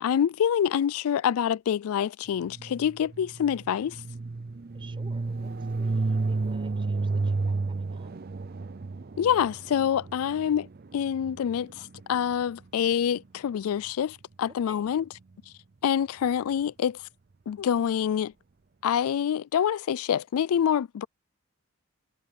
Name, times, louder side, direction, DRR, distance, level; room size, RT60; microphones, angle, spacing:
voice 1, 0.0-4.0 9.2-10.7 10.9-15.0 15.8-17.0 17.5-18.3 18.8-21.1, left 8 dB, 75° left, 0.3 m, -26 dB
sound 1, 2.5-12.4, right 3 dB, 40° right, 0.5 m, -32 dB
voice 2, 4.7-8.1 14.5-14.9, right 2 dB, 20° right, 7.9 m, -52 dB
head